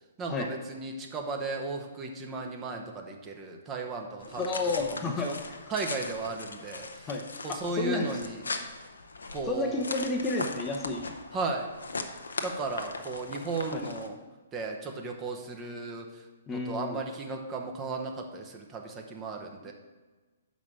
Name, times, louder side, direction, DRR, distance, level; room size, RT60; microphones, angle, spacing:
voice 1, 0.2-4.4 5.0-5.3 5.7-7.1 7.4-8.4 9.3-9.8 11.3-11.7 12.4-14.2 14.5-16.2 16.5-19.7, right 3 dB, 20° right, 2 dB, 1.0 m, -35 dB
sound 1, 4.2-14.1, left 3 dB, 70° left, 0.8 m, -39 dB
voice 2, 4.4-5.3 7.1-7.2 7.5-8.1 9.5-11.0 13.7-13.8 16.5-17.0 19.7-19.8, left 3 dB, 20° left, 2 dB, 0.8 m, -31 dB
6.0 x 5.3 x 6.8 m, 1.2 s
figure-of-eight pair, 120°, 0 cm